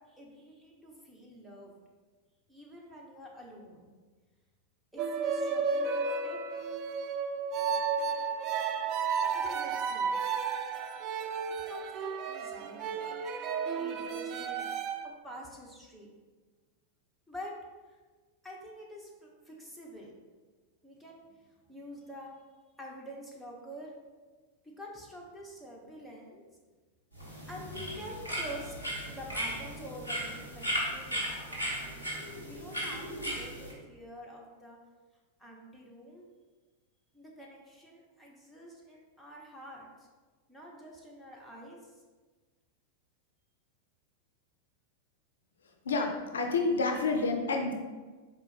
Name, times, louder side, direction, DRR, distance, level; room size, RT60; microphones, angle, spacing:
voice 1, 0.0-1.7 2.5-3.9 4.9-6.4 7.6-8.2 9.3-10.2 11.6-13.0 13.7-14.7 15.2-16.1 17.3-17.5 17.8-18.0 18.4-20.1 20.8-22.3 22.7-23.9 24.6-26.4 27.5-31.3 32.4-34.8 35.4-36.2 37.1-39.9 40.5-41.9, equal, ahead, -4 dB, 1.0 m, -47 dB
sound 1, 5.0-15.0, right 5 dB, 40° right, 0.3 m, -33 dB
sound 2, 27.1-33.7, equal, 85° right, 1.5 m, -36 dB
voice 2, 45.9-47.7, left 3 dB, 65° left, 4 dB, 0.4 m, -29 dB
4.2 x 2.9 x 4.3 m, 1.3 s
figure-of-eight pair, 90°, 0 cm